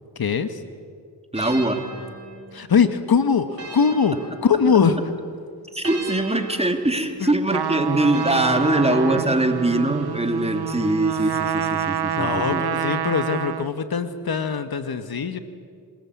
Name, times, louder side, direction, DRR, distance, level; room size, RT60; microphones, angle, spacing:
voice 1, 0.1-0.6 2.5-5.1 7.2-7.3 10.7-10.8 12.1-15.4, left 6 dB, 55° left, 10 dB, 1.6 m, -22 dB
voice 2, 1.3-1.8 5.7-12.6, right 1 dB, 15° right, 5 dB, 3.2 m, -22 dB
sound 1, 1.3-5.1 5.8-9.5, right 3 dB, 35° right, 5.8 m, -40 dB
Trumpet, 7.5-13.8, right 9 dB, 60° right, 1.0 m, -27 dB
27.0 x 20.5 x 8.6 m, 2.2 s
cardioid pair, 50°, 44 cm